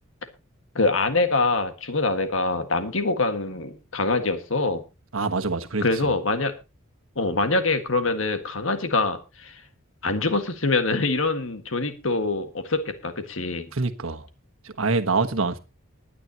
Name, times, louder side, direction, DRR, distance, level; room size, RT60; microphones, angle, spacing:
voice 1, 0.8-4.8 5.8-6.5 7.2-9.6 10.0-13.7, left 3 dB, 70° left, 1.8 m, -24 dB
voice 2, 5.1-5.8 13.8-14.2 14.8-15.6, right 3 dB, 80° right, 1.3 m, -25 dB
20.5 x 9.9 x 2.9 m
head